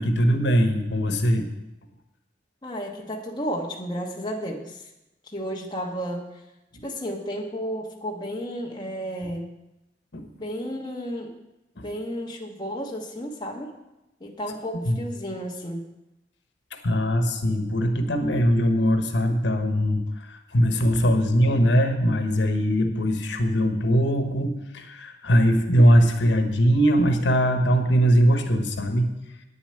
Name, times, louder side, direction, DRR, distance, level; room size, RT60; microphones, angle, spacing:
voice 1, 0.0-1.5 6.7-6.8 10.1-10.3 11.8-11.9 14.8-15.0 16.8-29.1, equal, 85° left, 6 dB, 1.3 m, -21 dB
voice 2, 2.6-4.9 5.2-6.4 6.8-9.5 10.4-11.3 11.7-13.7 14.2-15.8 21.1-21.6, equal, 25° left, 0 dB, 1.3 m, -33 dB
9.2 x 7.1 x 8.8 m, 0.94 s
head